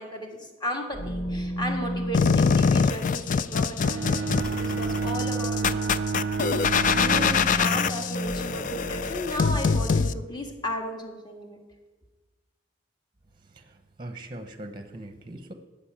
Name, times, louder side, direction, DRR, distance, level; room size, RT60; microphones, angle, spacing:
voice 1, 0.0-6.3 6.9-11.6, left 1 dB, 25° left, 3 dB, 1.7 m, -35 dB
sound 1, 0.9-10.1, equal, 65° left, 1.5 m, -35 dB
sound 2, 2.1-10.1, left 5 dB, 45° left, 0.4 m, -24 dB
Bowed string instrument, 3.8-8.1, right 4 dB, 75° right, 0.4 m, -30 dB
voice 2, 13.5-15.5, right 1 dB, 25° right, 8 dB, 0.8 m, -41 dB
12.0 x 5.3 x 8.7 m, 1.2 s
head